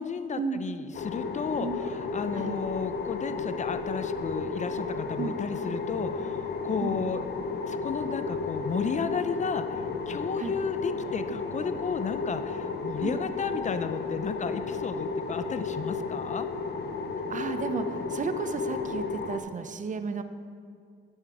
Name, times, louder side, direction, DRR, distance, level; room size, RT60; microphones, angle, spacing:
voice 1, 0.0-1.7 2.1-7.2 7.7-9.8 10.1-16.5, left 5 dB, 35° left, 10 dB, 0.6 m, -33 dB
sound 1, 0.9-19.4, left 4 dB, 55° left, 0.9 m, -33 dB
voice 2, 17.3-20.2, right 5 dB, 40° right, 10 dB, 0.6 m, -33 dB
10.0 x 8.8 x 4.8 m, 2.2 s
cardioid pair, 90°, 20 cm